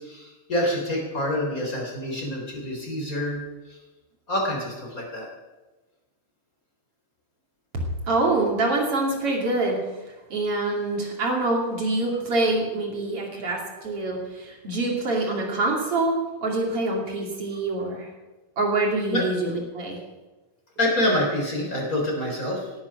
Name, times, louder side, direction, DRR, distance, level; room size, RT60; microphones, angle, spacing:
voice 1, 0.0-3.4 3.7-3.8 4.3-5.3 19.1-19.2 20.8-22.7, left 1 dB, 20° left, -1 dB, 3.1 m, -26 dB
voice 2, 8.1-9.8 10.3-18.1 18.6-20.0, right 2 dB, 40° right, -1 dB, 2.2 m, -25 dB
17.5 x 11.5 x 6.0 m, 1.1 s
omnidirectional pair, 6.0 m